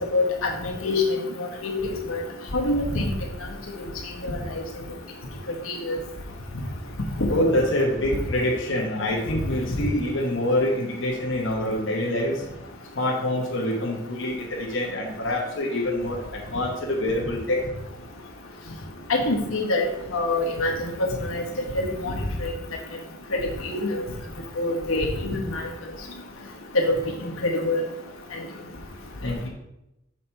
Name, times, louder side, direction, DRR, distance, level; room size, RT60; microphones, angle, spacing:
voice 1, 0.1-1.0 1.4-2.2 2.5-3.1 4.2-4.4 5.7-6.0 19.1-19.9 20.1-21.4 21.7-22.1 22.4-22.5 23.3-24.0 24.6-25.6 26.7-27.8, left 2 dB, 90° left, 0 dB, 1.2 m, -25 dB
voice 2, 7.3-12.4 13.0-16.2 16.5-17.6 29.2-29.5, left 1 dB, 70° left, -2 dB, 1.1 m, -25 dB
6.4 x 4.2 x 4.4 m, 0.89 s
head